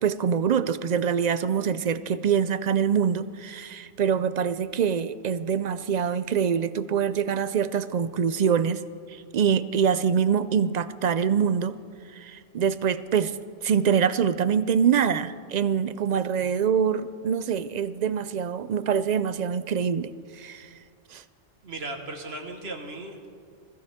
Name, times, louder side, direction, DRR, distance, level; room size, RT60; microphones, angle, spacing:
voice 1, 0.0-8.8 9.1-11.8 12.1-13.4 13.6-20.1 20.4-20.7 21.1-21.2, right 7 dB, 55° right, 14 dB, 0.5 m, -24 dB
voice 2, 21.6-23.3, right 2 dB, 80° right, 3 dB, 1.6 m, -36 dB
21.0 x 14.5 x 3.6 m, 2.2 s
omnidirectional pair, 1.1 m